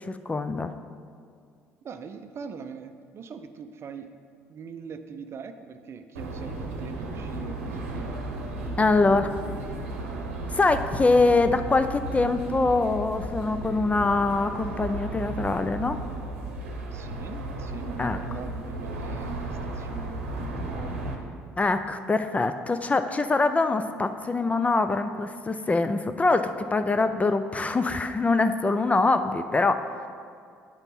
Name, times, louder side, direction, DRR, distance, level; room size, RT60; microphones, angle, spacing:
voice 1, 0.1-0.7 8.8-9.3 10.5-16.0 18.0-18.2 21.6-30.1, left 3 dB, 20° left, 9 dB, 0.4 m, -24 dB
voice 2, 1.8-4.1 4.5-8.1 16.9-21.0, right 6 dB, 40° right, 8 dB, 0.5 m, -42 dB
sound 1, 6.2-21.2, right 2 dB, 75° right, 0.8 m, -34 dB
9.1 x 5.2 x 4.2 m, 2.3 s
figure-of-eight pair, 50°, 7 cm